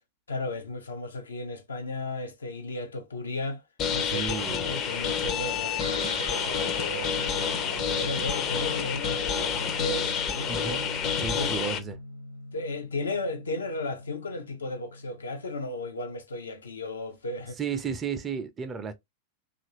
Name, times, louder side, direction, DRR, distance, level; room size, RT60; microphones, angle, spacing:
voice 1, 0.3-3.6 3.9-10.9 11.4-11.7 12.5-17.6, left 2 dB, 75° left, 0.7 m, -35 dB
sound 1, 3.8-11.8, left 7 dB, 35° left, 0.6 m, -29 dB
voice 2, 4.1-4.7 10.5-10.9 11.2-12.0 17.6-18.9, right 6 dB, 20° right, 0.5 m, -33 dB
Guitar, 5.8-15.6, equal, 90° right, 0.6 m, -42 dB
2.9 x 2.5 x 2.8 m
figure-of-eight pair, 90°, 0 cm